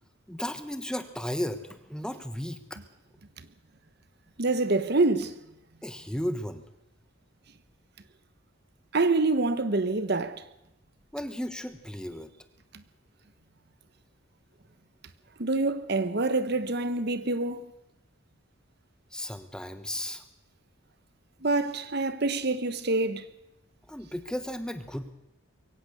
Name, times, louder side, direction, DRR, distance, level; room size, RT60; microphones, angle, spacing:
voice 1, 0.3-2.8 5.8-6.6 11.1-12.3 19.1-20.2 23.9-25.1, equal, 5° left, 1.2 m, -34 dB
voice 2, 4.4-5.3 8.9-10.4 15.4-17.6 21.4-23.3, right 3 dB, 50° right, 1.0 m, -26 dB
22.5 x 17.0 x 6.7 m
head